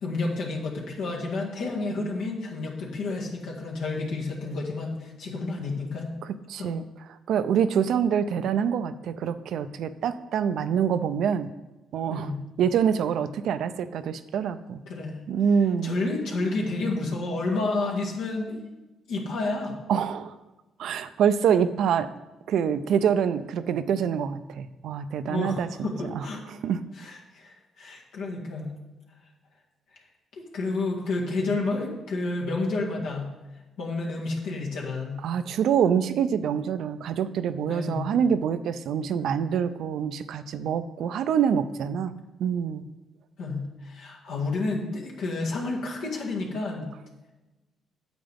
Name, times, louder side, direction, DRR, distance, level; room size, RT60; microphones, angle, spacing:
voice 1, 0.0-6.1 6.6-6.7 12.1-12.4 14.9-15.2 15.8-18.6 19.1-19.8 25.3-26.4 27.0-28.7 30.3-33.3 33.8-35.2 37.7-38.1 43.4-46.9, left 3 dB, 85° left, -2 dB, 1.8 m, -30 dB
voice 2, 6.5-6.8 7.3-11.5 11.9-12.3 12.6-14.8 15.3-15.9 19.9-20.3 20.8-22.1 22.5-25.9 26.1-26.8 35.2-42.1 42.4-42.8, right 7 dB, 75° right, 12 dB, 0.5 m, -25 dB
9.0 x 7.8 x 3.5 m, 1.1 s
cardioid pair, 90°, 0 cm